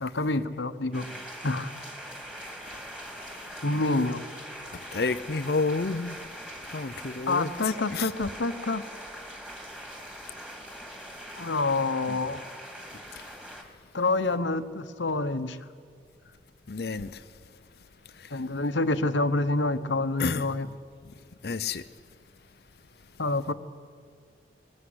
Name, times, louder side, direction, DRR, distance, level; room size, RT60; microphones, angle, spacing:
voice 1, 0.0-1.1 1.4-1.7 3.6-4.2 7.3-8.8 11.4-12.4 13.9-15.6 18.3-20.7 23.2-23.5, left 2 dB, 80° left, 1.2 m, -27 dB
sound 1, 0.9-13.6, equal, 5° right, 2.7 m, -42 dB
voice 2, 4.9-6.2 6.7-7.5 7.9-8.1 12.1-12.2 16.7-17.1 20.2-20.4 21.4-21.8, left 4 dB, 55° left, 0.6 m, -29 dB
21.5 x 20.5 x 9.7 m
head